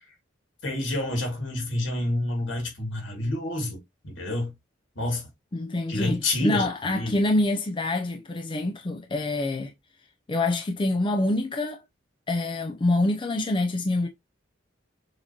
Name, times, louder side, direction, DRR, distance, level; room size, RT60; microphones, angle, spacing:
voice 1, 0.6-4.5 5.0-5.2 5.9-7.2, left 1 dB, 75° left, 2.3 m, -28 dB
voice 2, 5.5-9.7 10.3-11.8 12.3-14.1, left 2 dB, 25° left, 0.5 m, -26 dB
6.5 x 2.9 x 2.8 m
head